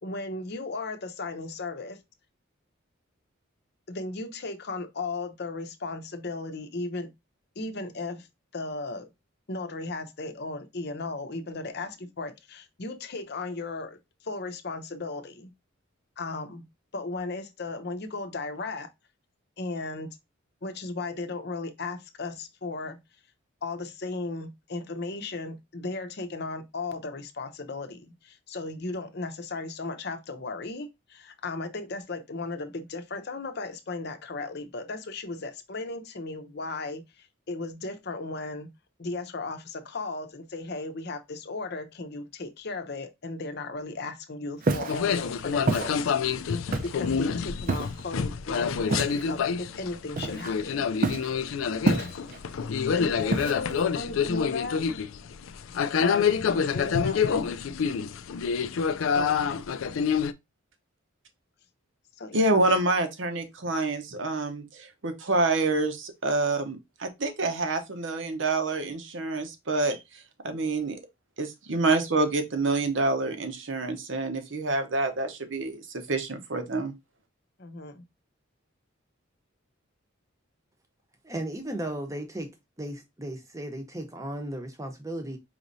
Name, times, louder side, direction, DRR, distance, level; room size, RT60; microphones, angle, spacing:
voice 1, 0.0-2.0 3.9-7.1 7.6-8.3 8.5-9.1 9.5-15.5 16.2-16.6 16.9-18.9 19.6-20.1 20.6-23.0 23.6-38.7 39.0-50.9 51.9-52.1 52.8-55.1 56.0-57.5 59.1-59.6 62.2-62.6 77.6-78.0, left 3 dB, 55° left, 0.7 m, -36 dB
Walk footsteps, 44.6-45.0 45.7-45.9 46.7-47.1 47.7-48.0 48.9-49.2 50.2-50.6 51.0-51.3 51.9-52.4 53.3-53.8, right 2 dB, 45° right, 0.6 m, -27 dB
sound 1, 44.9-60.3, left 6 dB, 80° left, 0.4 m, -27 dB
voice 2, 62.3-70.0 70.4-71.0 71.4-76.9, right 2 dB, 65° right, 0.9 m, -27 dB
voice 3, 81.2-82.5 82.8-85.4, right 1 dB, 15° right, 0.8 m, -35 dB
4.9 x 3.1 x 2.6 m
head